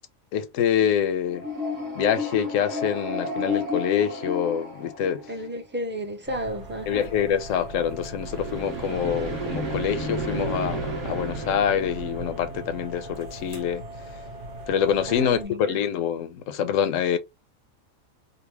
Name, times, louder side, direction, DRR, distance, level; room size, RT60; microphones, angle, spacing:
voice 1, 0.3-1.5 2.0-5.3 6.9-13.8 14.7-17.2, left 8 dB, 70° left, 1.0 m, -25 dB
sound 1, 1.3-5.6 8.2-13.2, left 1 dB, 60° right, 1.6 m, -32 dB
voice 2, 5.3-7.1 15.1-15.8, equal, 10° right, 0.5 m, -33 dB
sound 2, 6.3-15.4, right 1 dB, 40° right, 1.3 m, -39 dB
3.9 x 2.1 x 3.1 m
omnidirectional pair, 1.4 m